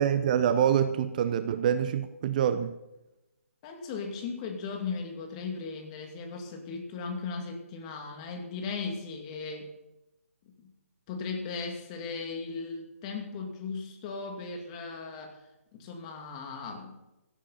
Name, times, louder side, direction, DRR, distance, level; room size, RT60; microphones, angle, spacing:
voice 1, 0.0-2.7, right 9 dB, 35° right, 11 dB, 0.7 m, -25 dB
voice 2, 3.6-9.7 10.5-10.7 11.1-15.4 15.7-17.0, left 4 dB, 25° left, 3 dB, 2.5 m, -37 dB
17.5 x 13.0 x 4.3 m, 0.95 s
figure-of-eight pair, 145°, 8 cm